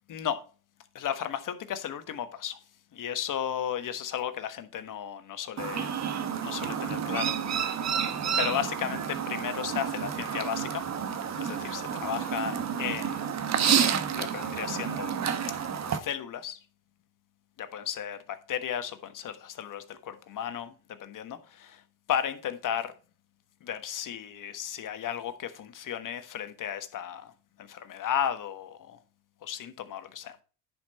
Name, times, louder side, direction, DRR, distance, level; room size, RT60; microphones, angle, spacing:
voice 1, 0.1-0.4 0.9-2.6 2.9-6.0 6.4-8.0 8.4-10.9 11.3-13.3 14.1-15.2 15.9-16.6 17.6-21.8 22.1-22.9 23.6-27.3 27.6-29.0 29.4-30.4, left 9 dB, 55° left, 1.4 m, -34 dB
Chirp tweet, 5.6-16.0, right 7 dB, 45° right, 1.4 m, -30 dB
10.5 x 5.6 x 4.2 m
supercardioid pair, 80°, 39 cm